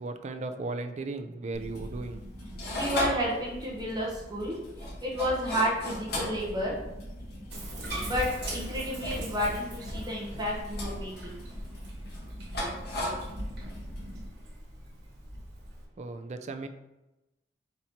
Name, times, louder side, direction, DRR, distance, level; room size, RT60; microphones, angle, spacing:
voice 1, 0.0-2.2 16.0-16.7, right 3 dB, 40° right, 7 dB, 0.4 m, -36 dB
sound 1, 1.5-14.3, left 1 dB, 60° left, 1.4 m, -37 dB
voice 2, 2.7-6.8 8.0-11.4, equal, 25° right, -3 dB, 0.9 m, -31 dB
Bathtub (filling or washing), 7.5-15.8, right 1 dB, 65° right, 1.4 m, -42 dB
4.2 x 3.0 x 4.1 m, 0.97 s
head